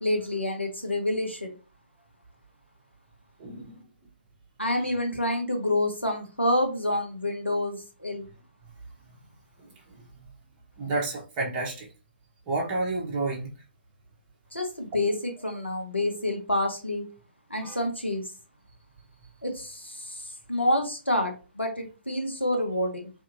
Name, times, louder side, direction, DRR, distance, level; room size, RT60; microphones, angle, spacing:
voice 1, 0.0-1.6 4.6-8.3 14.5-17.1 17.5-18.2 19.4-23.1, left 1 dB, 90° left, 4 dB, 0.9 m, -28 dB
voice 2, 3.4-3.8 10.8-11.9 12.5-13.5 17.6-17.8, right 2 dB, 20° right, -2 dB, 0.8 m, -30 dB
2.7 x 2.7 x 2.5 m, 0.33 s
figure-of-eight pair, 135°, 6 cm